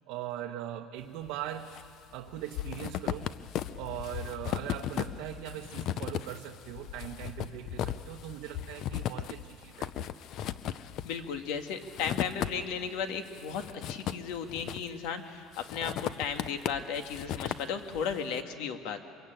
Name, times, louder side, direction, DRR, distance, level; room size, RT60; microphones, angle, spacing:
voice 1, 0.1-1.7 2.1-3.3 3.8-9.9, right 12 dB, 70° right, 3 dB, 1.1 m, -40 dB
sound 1, 1.3-1.9 2.1-12.9 13.3-15.1 15.5-18.2, left 11 dB, 45° left, 0.6 m, -37 dB
voice 2, 11.0-13.6 13.9-19.0, left 7 dB, 75° left, 6 dB, 1.9 m, -35 dB
25.0 x 22.0 x 9.1 m, 2.4 s
cardioid pair, 170°, 0 cm